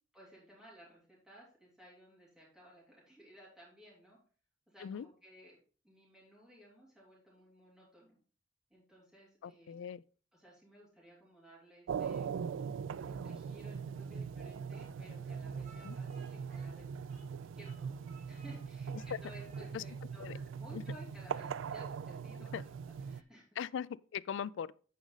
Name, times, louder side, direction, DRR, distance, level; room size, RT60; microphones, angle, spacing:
voice 1, 0.1-4.2 4.7-5.6 5.8-8.2 8.7-9.7 10.3-12.3 13.0-23.5, equal, 5° right, 3.2 m, -58 dB
voice 2, 9.4-10.0 15.8-16.0 18.9-19.0 19.7-19.8 20.2-20.4 20.7-20.8 22.5-22.6 23.6-24.7, left 8 dB, 70° left, 0.3 m, -40 dB
sound 1, 11.9-23.2, right 6 dB, 70° right, 0.3 m, -41 dB
Speech, 14.7-17.4 17.6-18.6 18.9-19.7, right 4 dB, 40° right, 1.8 m, -62 dB
9.3 x 5.1 x 4.0 m
head